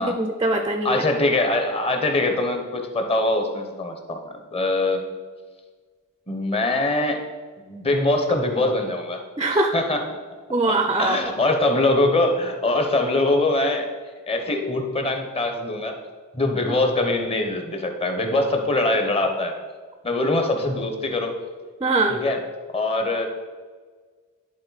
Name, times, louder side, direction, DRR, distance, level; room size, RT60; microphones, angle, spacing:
voice 1, 0.0-1.0 9.4-9.7 10.5-11.3 16.7-16.8 21.8-22.2, right 2 dB, 20° right, 5 dB, 0.4 m, -22 dB
voice 2, 0.8-5.0 6.3-7.2 7.7-9.2 9.7-10.0 11.0-13.9 14.3-16.0 16.3-19.5 20.0-21.3 22.1-22.4 22.7-23.3, left 2 dB, 25° left, 4 dB, 0.9 m, -23 dB
10.5 x 3.9 x 4.0 m, 1.5 s
head